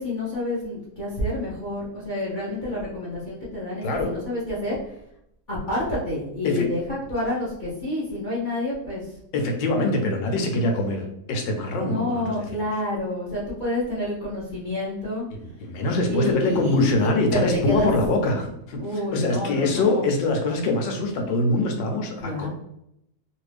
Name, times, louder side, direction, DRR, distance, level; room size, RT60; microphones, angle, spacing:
voice 1, 0.0-4.8 5.5-9.1 11.8-15.2 16.1-17.9 18.8-20.1 22.2-22.5, left 1 dB, 45° left, -7 dB, 0.6 m, -28 dB
voice 2, 3.8-4.1 6.4-6.7 9.3-12.4 15.3-22.5, left 2 dB, 85° left, 3 dB, 1.4 m, -24 dB
3.0 x 2.6 x 3.3 m, 0.77 s
omnidirectional pair, 1.9 m